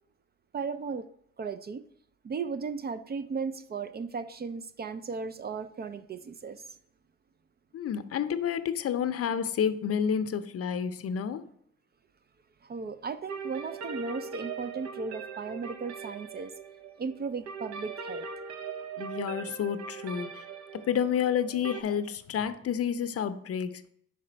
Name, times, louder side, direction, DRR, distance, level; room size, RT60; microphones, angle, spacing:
voice 1, 0.5-1.1 1.4-1.8 2.2-6.6 12.6-16.5 17.0-18.3, right 5 dB, 35° right, 0.4 m, -36 dB
voice 2, 7.7-11.5 19.0-20.4 20.7-23.9, left 8 dB, 50° left, 0.6 m, -30 dB
sound 1, 13.3-21.8, right 5 dB, 65° right, 0.7 m, -40 dB
5.4 x 5.0 x 4.3 m
cardioid pair, 90°, 30 cm